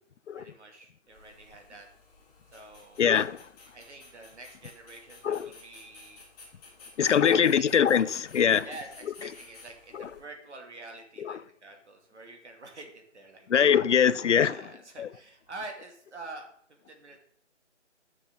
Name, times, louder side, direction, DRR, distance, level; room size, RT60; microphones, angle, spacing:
voice 1, 0.3-1.9 2.5-3.2 3.7-6.2 7.1-7.7 8.6-13.6 14.5-16.4 16.9-17.2, right 2 dB, 65° right, 2.7 m, -46 dB
sound 1, 1.1-10.2, left 3 dB, 10° left, 1.7 m, -54 dB
voice 2, 3.0-3.4 5.2-5.5 7.0-8.7 9.9-10.1 11.2-11.4 13.5-14.7 15.0-15.1, left 8 dB, 75° left, 0.6 m, -23 dB
10.5 x 7.4 x 3.9 m
hypercardioid pair, 165°, 36 cm